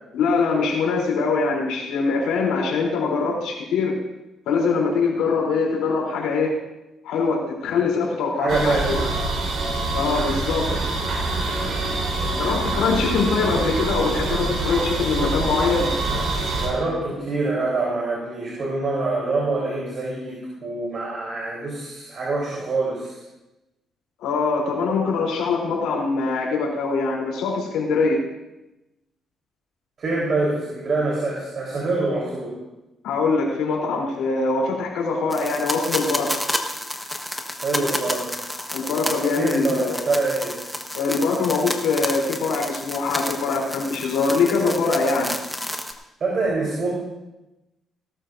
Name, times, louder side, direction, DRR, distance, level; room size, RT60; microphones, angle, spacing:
voice 1, 0.1-4.0 4.5-6.5 7.0-9.1 9.9-10.9 12.4-15.9 24.2-28.2 33.0-36.3 38.7-40.0 40.9-45.3, left 4 dB, 90° left, -1 dB, 3.4 m, -23 dB
voice 2, 8.4-9.0 12.1-12.5 16.6-23.2 30.0-32.5 37.6-38.2 39.4-40.5 46.2-46.9, right 3 dB, 50° right, -4 dB, 3.9 m, -25 dB
sound 1, 8.5-16.7, right 2 dB, 75° right, 3.9 m, -25 dB
sound 2, 35.3-45.9, left 1 dB, ahead, 1.3 m, -30 dB
18.0 x 12.5 x 2.6 m, 0.98 s
cardioid pair, 90°, 0 cm